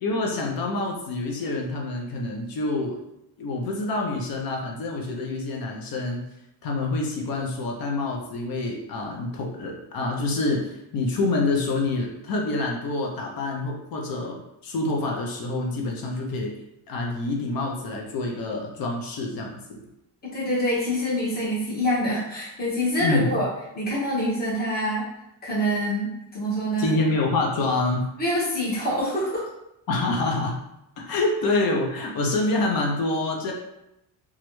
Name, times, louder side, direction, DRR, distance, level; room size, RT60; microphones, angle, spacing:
voice 1, 0.0-3.0 3.4-6.2 6.6-16.5 16.9-19.8 23.0-23.3 26.8-28.1 29.9-30.6 31.1-33.5, left 2 dB, 60° left, 0 dB, 0.6 m, -27 dB
voice 2, 20.2-23.5 23.7-25.0 25.4-26.9 28.2-29.5, equal, 25° left, -7 dB, 1.1 m, -25 dB
3.1 x 2.4 x 3.0 m, 0.85 s
cardioid pair, 160°, 40 cm